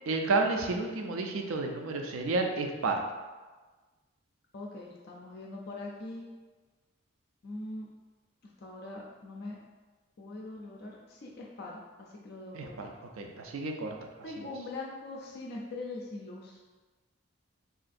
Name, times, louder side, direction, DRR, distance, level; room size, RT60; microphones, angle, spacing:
voice 1, 0.1-3.0 12.5-12.9 13.2-14.1 14.4-14.5, right 3 dB, 80° right, 3 dB, 0.4 m, -31 dB
voice 2, 4.5-6.3 7.4-7.9 8.6-9.6 10.2-12.9 14.2-16.6, left 2 dB, 50° left, -2 dB, 0.4 m, -42 dB
3.8 x 2.4 x 2.5 m, 1.3 s
head